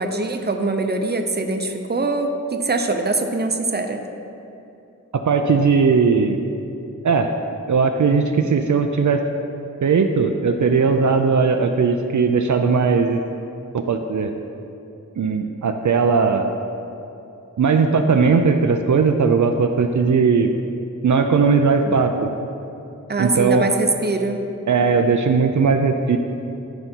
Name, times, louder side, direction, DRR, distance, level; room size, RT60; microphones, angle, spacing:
voice 1, 0.0-4.0 21.8-21.9 23.1-24.4, right 3 dB, 35° right, 5 dB, 0.7 m, -23 dB
voice 2, 5.1-6.4 7.0-7.3 7.7-9.3 9.8-13.2 13.7-14.3 15.2-16.5 17.6-20.5 21.0-22.3 23.2-23.7 24.7-26.2, right 5 dB, 70° right, 5 dB, 0.5 m, -18 dB
12.5 x 5.3 x 4.5 m, 2.8 s
wide cardioid pair, 80°, 31 cm